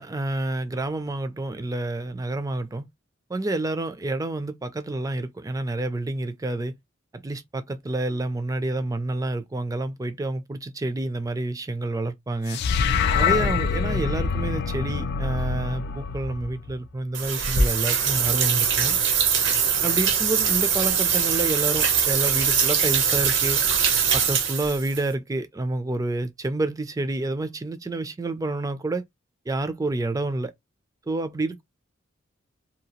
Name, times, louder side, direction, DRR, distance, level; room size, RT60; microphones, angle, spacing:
voice 1, 0.0-2.9 3.3-6.7 7.1-12.6 13.1-19.0 19.8-23.6 24.1-29.0 29.5-30.5 31.1-31.6, right 2 dB, 15° right, 0.4 m, -29 dB
sound 1, 12.5-16.9, left 5 dB, 55° left, 0.3 m, -25 dB
sound 2, 17.1-25.0, right 6 dB, 65° right, 0.7 m, -22 dB
2.8 x 2.3 x 2.8 m
head